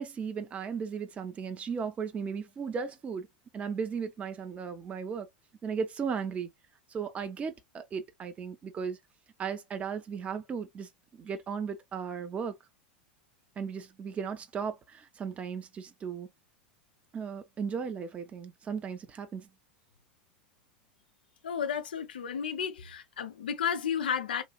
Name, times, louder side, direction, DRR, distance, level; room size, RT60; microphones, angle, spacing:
voice 1, 0.0-3.3 3.5-5.3 5.6-6.5 6.9-9.0 9.4-12.5 13.6-16.3 17.1-19.5, right 6 dB, 25° right, 0.7 m, -36 dB
voice 2, 21.4-24.4, left 7 dB, 75° left, 0.5 m, -32 dB
3.1 x 2.4 x 2.3 m
figure-of-eight pair, 85°, 5 cm